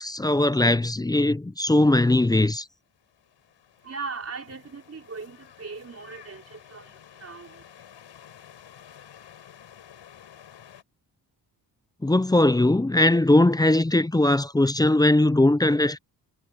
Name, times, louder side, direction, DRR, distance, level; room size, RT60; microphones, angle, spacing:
voice 1, 0.0-2.7 12.0-16.0, left 1 dB, 10° left, 0.4 m, -20 dB
sound 1, 2.9-10.8, left 9 dB, 90° left, 4.4 m, -51 dB
voice 2, 3.8-7.6, right 4 dB, 35° right, 4.9 m, -39 dB
wide cardioid pair, 150°, 42 cm